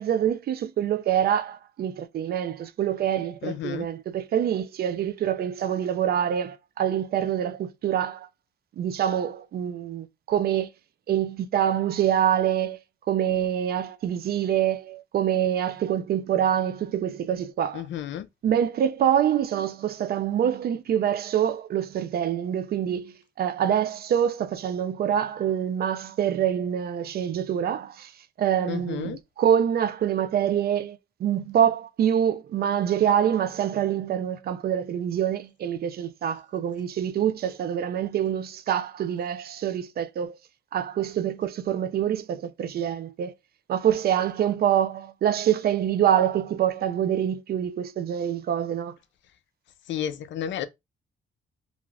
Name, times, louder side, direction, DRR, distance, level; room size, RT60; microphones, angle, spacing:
voice 1, 0.0-8.3 8.8-10.7 11.1-12.8 13.1-17.8 18.4-28.1 28.4-40.4 40.7-43.3 43.7-48.9, right 9 dB, 50° right, 0.4 m, -25 dB
voice 2, 3.4-3.9 17.7-18.3 28.7-29.2 49.9-50.7, left 10 dB, 70° left, 0.5 m, -32 dB
2.5 x 2.3 x 3.2 m
cardioid pair, 90°, 20 cm